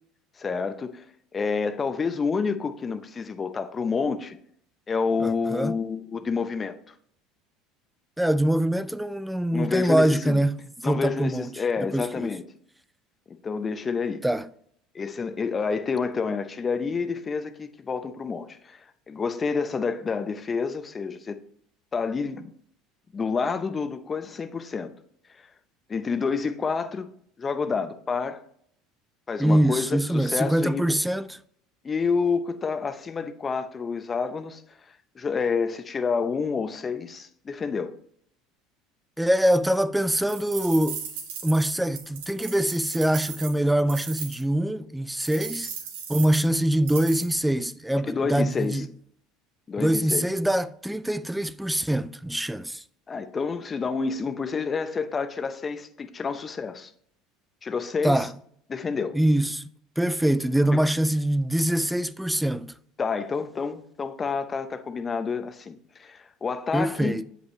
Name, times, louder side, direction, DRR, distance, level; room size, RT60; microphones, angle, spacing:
voice 1, 0.4-1.0 1.3-4.4 4.9-6.9 9.5-10.4 10.8-12.4 13.3-14.2 14.9-21.4 21.9-22.5 23.1-24.9 25.3-25.5 25.9-27.1 27.4-28.4 29.3-30.9 31.8-37.9 48.1-48.8 49.7-50.3 53.1-56.9 57.6-58.3 58.7-59.2 63.0-67.2, left 5 dB, 30° left, 0.7 m, -29 dB
voice 2, 5.2-5.8 8.2-10.6 10.8-11.5 11.8-12.3 14.2-14.5 29.4-31.3 39.2-41.1 41.4-45.7 46.1-48.9 49.8-52.8 58.0-58.3 59.1-59.7 60.0-62.7 66.7-67.2, right 1 dB, 5° right, 0.4 m, -24 dB
sound 1, 40.3-44.4 45.2-47.3, right 7 dB, 80° right, 1.5 m, -37 dB
7.9 x 5.2 x 3.1 m
hypercardioid pair, 85°, 0 cm